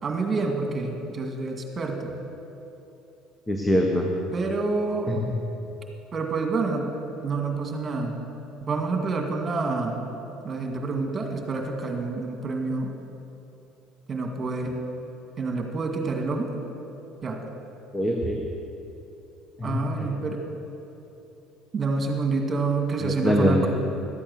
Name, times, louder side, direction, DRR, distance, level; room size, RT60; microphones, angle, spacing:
voice 1, 0.0-2.1 4.3-5.2 6.1-6.9 7.2-8.2 8.6-10.1 10.4-12.9 14.1-14.7 15.4-16.5 17.2-17.4 19.6-20.4 21.7-23.7, right 3 dB, 35° right, 3 dB, 2.0 m, -28 dB
voice 2, 3.5-4.1 5.1-5.2 17.9-18.4 19.6-19.8 23.0-23.7, equal, 15° left, 1 dB, 1.3 m, -23 dB
13.0 x 8.6 x 6.6 m, 2.9 s
supercardioid pair, 75°, 0 cm